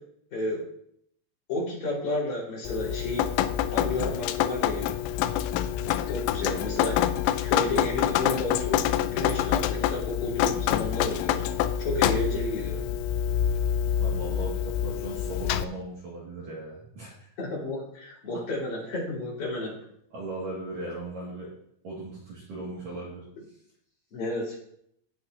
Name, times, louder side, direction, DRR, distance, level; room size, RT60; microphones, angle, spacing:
voice 1, 0.3-0.6 1.5-3.3 3.7-5.0 6.0-7.0 7.4-8.8 9.1-11.4 11.8-12.9 17.4-19.7 24.1-24.6, left 2 dB, 40° left, -6 dB, 5.8 m, -31 dB
Drip, 2.7-15.7, left 11 dB, 85° left, 3.2 m, -27 dB
voice 2, 14.0-17.3 18.3-18.4 20.1-21.5 21.8-23.6, right 2 dB, 50° right, -6 dB, 3.3 m, -38 dB
18.0 x 7.8 x 2.9 m, 0.71 s
omnidirectional pair, 5.9 m